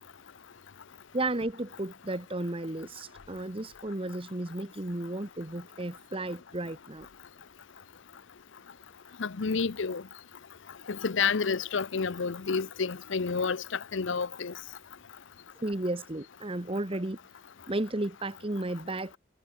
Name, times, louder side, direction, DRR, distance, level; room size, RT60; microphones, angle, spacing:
voice 1, 1.1-7.1 15.6-17.2 17.7-19.2, right 2 dB, 25° right, 1.1 m, -33 dB
voice 2, 9.2-10.0 10.9-14.5, left 5 dB, 65° left, 0.7 m, -30 dB
head